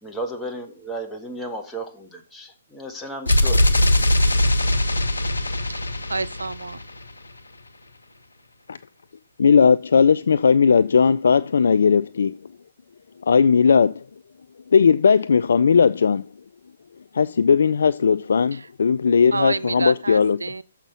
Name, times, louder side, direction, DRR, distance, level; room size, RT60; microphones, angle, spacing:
voice 1, 0.0-3.7 4.6-4.8, right 1 dB, 5° left, 1.5 m, -34 dB
sound 1, 3.3-7.1, left 1 dB, 85° left, 1.1 m, -20 dB
voice 2, 6.1-6.8 18.5-18.7 19.3-20.6, right 3 dB, 80° right, 0.5 m, -28 dB
voice 3, 9.4-12.3 13.2-14.0 14.7-16.2 17.1-20.4, left 6 dB, 65° left, 0.3 m, -17 dB
7.1 x 5.8 x 6.9 m
figure-of-eight pair, 130°, 0 cm